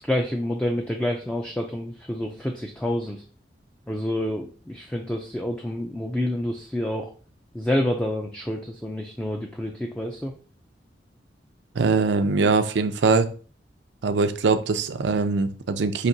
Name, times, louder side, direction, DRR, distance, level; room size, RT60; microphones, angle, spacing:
voice 1, 0.0-3.2 3.9-7.1 7.5-10.3, left 1 dB, 5° left, 2 dB, 0.3 m, -28 dB
voice 2, 11.8-13.3 14.0-16.1, right 4 dB, 80° right, 9 dB, 0.5 m, -22 dB
5.8 x 2.9 x 2.7 m, 0.39 s
head